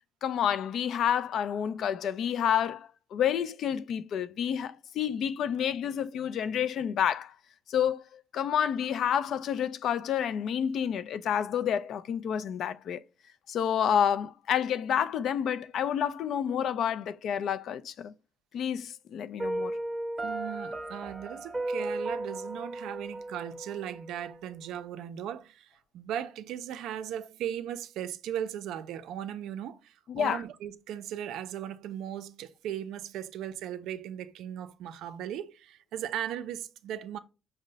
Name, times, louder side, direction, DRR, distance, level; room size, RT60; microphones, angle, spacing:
voice 1, 0.2-7.3 7.7-13.0 13.5-18.1 18.5-19.7 30.1-30.4, left 9 dB, 70° left, 0.3 m, -29 dB
Piano, 19.4-24.3, right 2 dB, 20° right, 0.7 m, -35 dB
voice 2, 20.2-37.2, right 10 dB, 85° right, 0.4 m, -37 dB
5.3 x 2.0 x 3.8 m
cardioid pair, 90°, 0 cm